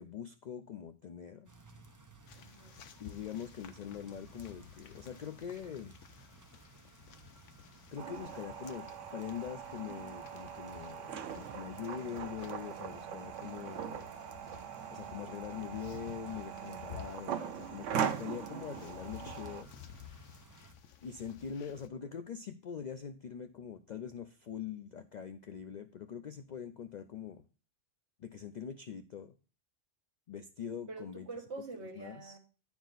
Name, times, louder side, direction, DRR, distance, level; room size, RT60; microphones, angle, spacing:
voice 1, 0.0-1.5 3.0-5.9 7.9-8.9 9.1-14.1 14.9-19.7 21.0-27.4 28.2-29.3 30.3-31.3 32.0-32.4, left 8 dB, 65° left, 0.4 m, -43 dB
sound 1, 1.5-20.8, right 2 dB, 20° right, 0.7 m, -58 dB
sound 2, 2.3-21.9, left 8 dB, 85° left, 1.1 m, -54 dB
voice 2, 2.3-2.9 21.8-22.2 30.9-32.4, right 3 dB, 65° right, 1.6 m, -46 dB
sound 3, 8.0-19.6, right 8 dB, 85° right, 1.0 m, -41 dB
10.0 x 4.8 x 3.8 m
omnidirectional pair, 1.2 m